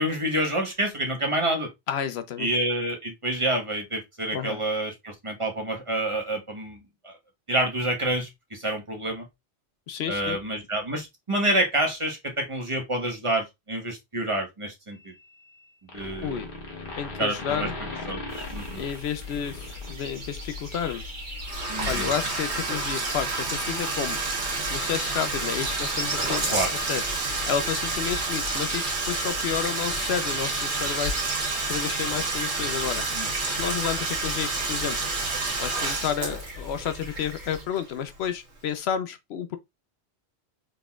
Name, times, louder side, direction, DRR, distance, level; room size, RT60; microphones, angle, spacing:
voice 1, 0.0-1.7 2.4-6.8 7.0-7.1 7.5-9.2 10.1-15.1 15.9-16.4 17.2-17.7 18.1-18.8 21.7-22.1 26.5-26.7 33.2-33.3, right 1 dB, 30° right, 1.3 m, -28 dB
voice 2, 1.9-2.5 4.3-4.6 9.9-10.4 16.2-16.5 17.0-17.7 18.8-21.0 21.8-24.2 24.7-27.0 27.5-31.1 31.7-33.0 33.4-35.0 35.6-39.6, left 8 dB, 75° left, 0.8 m, -31 dB
sound 1, 15.0-15.6 15.9-20.3, left 2 dB, 55° left, 1.2 m, -38 dB
sound 2, 18.3-37.6, left 1 dB, 45° right, 1.7 m, -39 dB
Bathtub (filling or washing), 21.4-38.2, right 3 dB, 90° right, 1.6 m, -29 dB
4.0 x 3.8 x 2.4 m
omnidirectional pair, 1.1 m